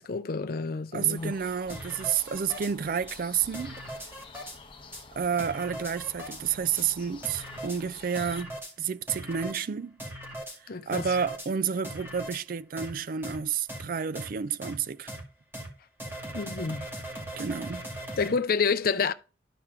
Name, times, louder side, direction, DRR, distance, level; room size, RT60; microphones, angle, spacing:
voice 1, 0.0-1.3 10.7-11.0 16.3-16.9 18.2-19.1, left 5 dB, 55° left, 0.5 m, -28 dB
voice 2, 0.9-3.8 5.2-10.0 10.9-15.1 17.4-17.9, right 7 dB, 50° right, 0.4 m, -30 dB
sound 1, 1.1-8.4, left 3 dB, 30° left, 0.8 m, -49 dB
sound 2, 1.7-2.7 3.1-3.2 3.5-4.6 4.9-5.0 5.4-6.4 6.8-6.9 7.2-7.8 8.2-8.7 9.1-9.6 10.0-10.6 10.9-11.5 11.8-12.4 12.8-12.9 13.2-13.4 13.7-13.8 14.2-14.3 14.6-14.7 15.1-15.2 15.5-15.7 16.0-18.3, equal, 15° right, 2.1 m, -39 dB
12.0 x 4.5 x 3.6 m
head